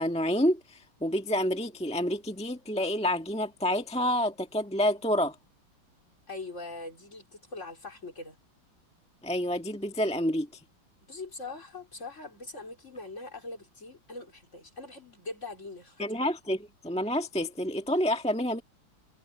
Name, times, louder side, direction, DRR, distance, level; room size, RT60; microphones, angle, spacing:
voice 1, 0.0-5.3 9.2-10.6 16.0-18.6, equal, 5° left, 1.2 m, -28 dB
voice 2, 6.3-8.4 11.0-16.3, left 3 dB, 35° left, 4.4 m, -42 dB
omnidirectional pair, 2.3 m